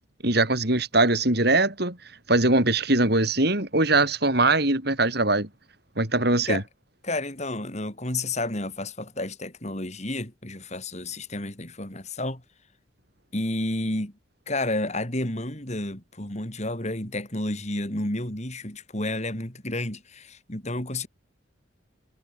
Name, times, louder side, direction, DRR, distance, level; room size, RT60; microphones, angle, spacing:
voice 1, 0.2-2.0 2.3-5.5 6.0-6.6, right 2 dB, 55° right, 5.2 m, -21 dB
voice 2, 7.0-12.4 13.3-14.1 14.5-21.1, left 2 dB, 35° left, 4.5 m, -31 dB
head